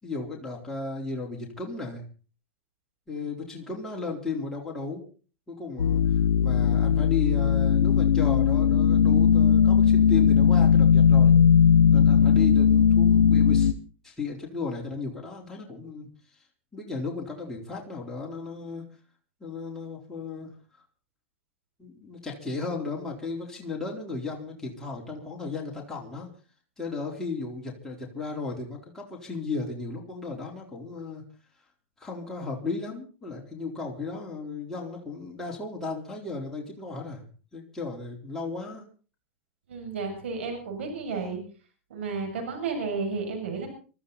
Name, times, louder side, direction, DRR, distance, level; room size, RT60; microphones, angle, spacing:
voice 1, 0.0-2.0 3.1-5.1 5.5-11.4 11.9-13.7 14.0-16.4 16.7-18.9 19.4-20.5 21.8-26.3 26.8-31.2 32.0-37.2 37.5-38.8, left 4 dB, 5° left, -3 dB, 4.2 m, -35 dB
sound 1, 5.8-13.7, left 7 dB, 90° left, 0.9 m, -19 dB
voice 2, 39.7-41.4 41.9-43.7, right 4 dB, 75° right, 3 dB, 7.1 m, -32 dB
24.0 x 13.5 x 4.2 m, 0.39 s
hypercardioid pair, 110°, 6 cm